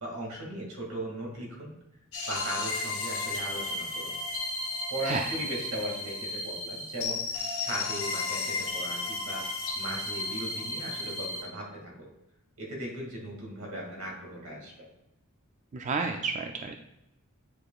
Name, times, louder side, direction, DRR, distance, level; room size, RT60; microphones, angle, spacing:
voice 1, 0.0-1.7 2.3-4.2 4.9-9.4 9.7-11.9 12.6-14.9, right 1 dB, 80° right, -1 dB, 2.1 m, -38 dB
sound 1, 2.1-11.4, left 2 dB, 75° left, 1.6 m, -34 dB
voice 2, 15.7-16.8, right 4 dB, 35° right, 4 dB, 0.3 m, -31 dB
8.6 x 4.7 x 2.4 m, 0.91 s
head